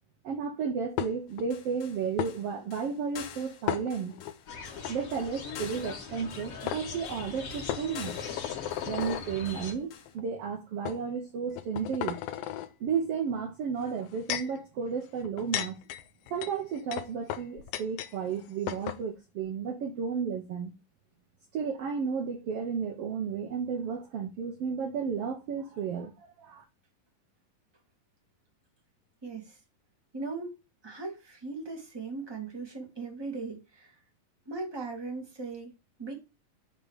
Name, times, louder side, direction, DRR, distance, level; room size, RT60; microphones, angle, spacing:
voice 1, 0.2-4.1 4.9-8.2 8.9-12.2 12.8-15.7 16.3-20.7 21.5-26.6, right 6 dB, 75° right, 1.4 m, -33 dB
sound 1, 1.0-1.5 2.2-2.3 3.7-4.3 4.8-4.9 6.2-6.3 6.7-6.8 7.7-9.3 10.1-10.2 10.9-11.0 11.5-12.7 13.8-14.6 15.2-18.1 18.4-18.5 18.7-19.0, left 12 dB, 85° left, 2.4 m, -35 dB
sound 2, 1.3-10.1, left 9 dB, 65° left, 1.9 m, -49 dB
sound 3, 4.5-9.7, left 4 dB, 50° left, 2.4 m, -41 dB
voice 2, 29.2-29.6 30.1-30.5 30.8-34.0 34.5-35.7 36.0-36.1, right 3 dB, 10° right, 1.7 m, -38 dB
8.1 x 3.8 x 6.5 m
omnidirectional pair, 4.1 m